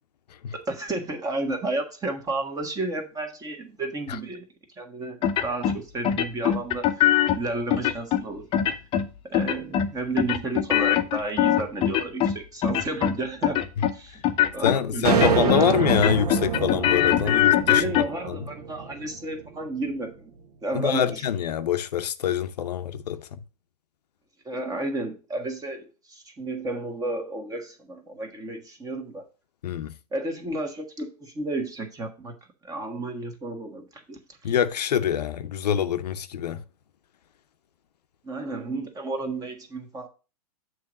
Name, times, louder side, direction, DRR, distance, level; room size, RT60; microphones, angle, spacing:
voice 1, 0.5-4.4 4.8-8.5 9.2-13.6 13.9-14.2 14.5-15.2 17.2-20.3 20.6-21.3 24.4-29.2 30.1-32.4 32.6-34.5 38.2-40.1, right 2 dB, 15° right, 1.4 m, -32 dB
sound 1, 5.2-5.8 6.0-7.4 7.7-8.2 8.5-9.1 9.3-9.9 10.2-12.4 12.6-13.2 13.4-13.9 14.2-14.8 15.1-15.6 15.9-18.0, left 11 dB, 25° left, 0.6 m, -22 dB
voice 2, 14.6-17.9 18.3-18.4 20.7-23.4 29.6-29.9 34.4-36.6, left 9 dB, 80° left, 0.6 m, -25 dB
sound 2, 15.0-19.5, right 7 dB, 70° right, 0.9 m, -27 dB
7.2 x 3.2 x 6.1 m
hypercardioid pair, 125°, 20 cm